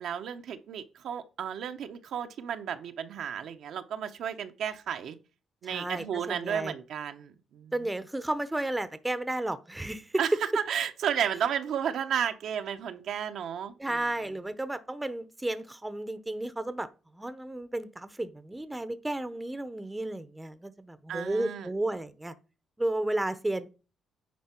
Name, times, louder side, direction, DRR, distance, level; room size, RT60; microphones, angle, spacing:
voice 1, 0.0-5.2 5.6-7.7 10.2-13.7 21.1-21.7, right 8 dB, 70° right, 0.8 m, -33 dB
voice 2, 5.6-6.7 7.7-10.2 13.8-16.9 17.1-22.3 22.8-23.7, right 1 dB, 10° right, 0.7 m, -33 dB
9.4 x 4.4 x 4.4 m
cardioid pair, 90°, 0 cm